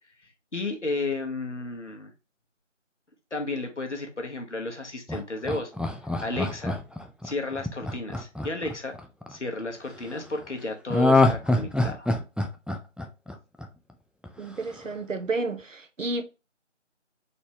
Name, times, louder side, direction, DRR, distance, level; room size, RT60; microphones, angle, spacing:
voice 1, 0.5-2.1 3.3-5.7 6.2-6.8 7.2-9.0 9.3-12.1, left 2 dB, 65° left, 1.2 m, -32 dB
Laughter, 5.1-9.3 10.9-13.9 14.2-14.3, left 2 dB, 5° right, 0.3 m, -25 dB
voice 2, 14.4-16.2, right 3 dB, 90° right, 0.9 m, -31 dB
4.0 x 3.7 x 2.8 m
figure-of-eight pair, 175°, 37 cm